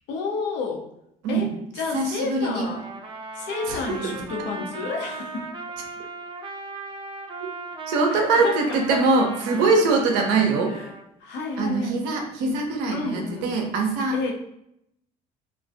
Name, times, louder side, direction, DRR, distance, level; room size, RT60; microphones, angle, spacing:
voice 1, 0.1-0.8 1.3-2.8 3.3-5.5 8.1-9.0 10.7-10.9 11.2-12.0 12.9-13.5 14.1-14.3, left 3 dB, 55° left, 1 dB, 0.6 m, -30 dB
voice 2, 1.9-2.7 3.7-4.1 7.9-10.8 11.6-14.2, right 3 dB, 65° right, 2 dB, 0.6 m, -23 dB
Trumpet, 2.6-11.0, right 3 dB, 25° right, 0.4 m, -37 dB
2.3 x 2.2 x 2.4 m, 0.77 s
figure-of-eight pair, 55°, 21 cm